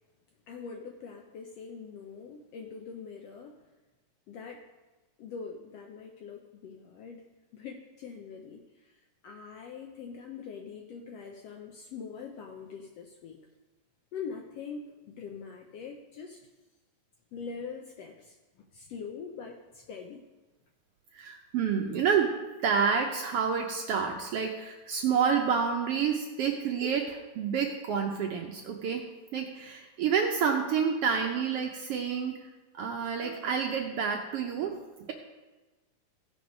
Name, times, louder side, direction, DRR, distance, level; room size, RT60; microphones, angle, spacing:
voice 1, 0.5-3.6 4.3-4.7 5.2-13.4 14.1-16.4 17.3-18.4 18.7-20.2, left 5 dB, 75° left, 2 dB, 1.5 m, -43 dB
voice 2, 21.1-22.3 22.6-29.1 29.3-32.5 32.7-35.1, right 6 dB, 75° right, 2 dB, 1.3 m, -29 dB
15.5 x 5.2 x 5.2 m, 1.2 s
omnidirectional pair, 3.5 m